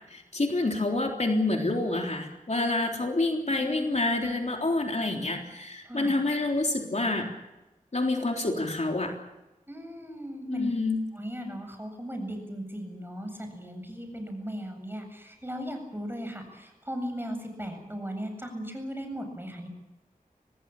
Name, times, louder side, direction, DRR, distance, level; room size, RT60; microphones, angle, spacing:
voice 1, 0.1-7.3 7.9-9.1 10.5-11.0, left 2 dB, 50° left, 1 dB, 3.7 m, -27 dB
voice 2, 3.6-4.0 5.8-6.2 9.7-10.7 11.1-19.7, equal, 15° right, 5 dB, 7.8 m, -37 dB
26.5 x 19.0 x 7.3 m, 0.99 s
wide cardioid pair, 60°, 15 cm